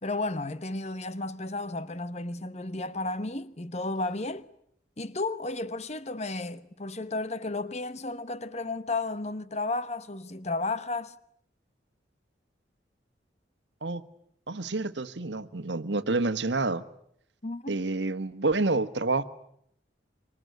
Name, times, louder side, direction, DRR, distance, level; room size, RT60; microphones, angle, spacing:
voice 1, 0.0-4.5 5.0-11.1 17.4-17.8, left 2 dB, 40° left, 1.2 m, -33 dB
voice 2, 14.5-16.8 17.7-19.2, right 3 dB, 80° right, 1.4 m, -28 dB
26.5 x 24.0 x 9.4 m
head